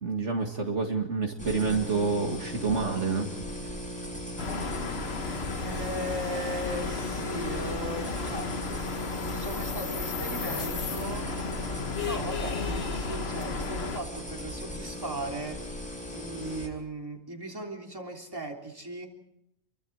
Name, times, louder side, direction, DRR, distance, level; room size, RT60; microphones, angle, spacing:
voice 1, 0.0-3.3 3.6-3.7, right 4 dB, 60° right, 2 dB, 2.2 m, -28 dB
sound 1, 1.4-16.7, equal, 5° left, 5.5 m, -38 dB
sound 2, 4.4-14.0, left 4 dB, 50° left, 1.5 m, -34 dB
voice 2, 5.6-8.5 9.2-11.3 12.0-15.6 16.1-19.1, right 1 dB, 15° right, 1 dB, 3.4 m, -37 dB
28.0 x 24.0 x 4.8 m, 0.79 s
omnidirectional pair, 1.4 m